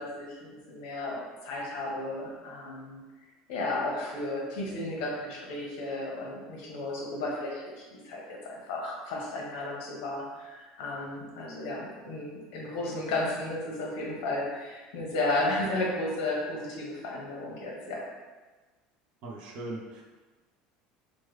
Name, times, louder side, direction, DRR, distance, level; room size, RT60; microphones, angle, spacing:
voice 1, 0.0-3.0 3.5-18.0, left 2 dB, 65° left, -3 dB, 0.8 m, -33 dB
voice 2, 19.2-20.0, right 2 dB, 45° right, -1 dB, 0.4 m, -39 dB
3.1 x 2.1 x 3.1 m, 1.3 s
cardioid pair, 180°, 3 cm